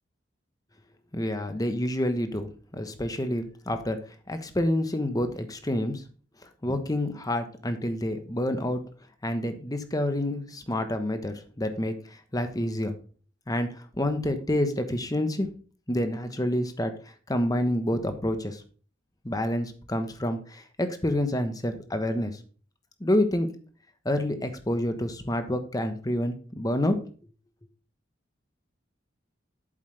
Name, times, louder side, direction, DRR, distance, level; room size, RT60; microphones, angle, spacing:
voice 1, 1.1-4.0 4.3-6.0 6.6-8.8 9.2-11.9 12.3-12.9 13.5-13.7 14.0-15.5 15.9-16.9 17.3-18.6 19.2-22.3 23.0-23.5 24.0-26.9, left 1 dB, 20° left, 8 dB, 1.1 m, -28 dB
8.3 x 7.6 x 3.3 m, 0.39 s
head